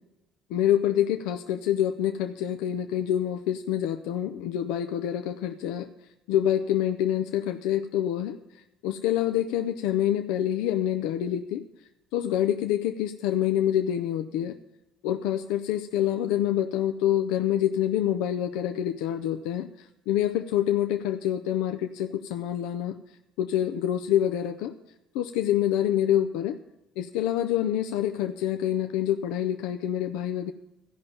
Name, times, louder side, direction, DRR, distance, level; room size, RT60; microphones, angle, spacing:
voice 1, 0.5-5.9 6.3-8.4 8.8-11.6 12.1-14.6 15.0-23.0 23.4-24.7 25.1-26.6 27.0-30.5, left 11 dB, 80° left, 7 dB, 0.5 m, -26 dB
14.5 x 5.4 x 8.6 m, 0.97 s
supercardioid pair, 85°, 0 cm